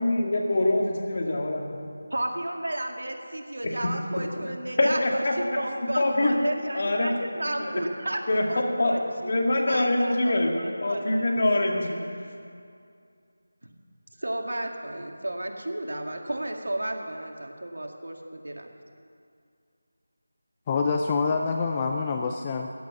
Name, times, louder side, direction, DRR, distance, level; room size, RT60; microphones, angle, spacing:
voice 1, 0.0-1.8 4.8-5.6 6.0-6.3 6.7-7.1 7.6-7.7 8.3-8.9 9.3-10.5 10.8-12.0, left 1 dB, 50° left, 1 dB, 2.1 m, -24 dB
voice 2, 2.1-11.5 14.2-18.7, right 1 dB, 75° right, 3 dB, 1.9 m, -33 dB
voice 3, 20.7-22.7, left 4 dB, 20° left, 4 dB, 0.5 m, -26 dB
15.0 x 9.4 x 7.4 m, 2.3 s
figure-of-eight pair, 165°, 0 cm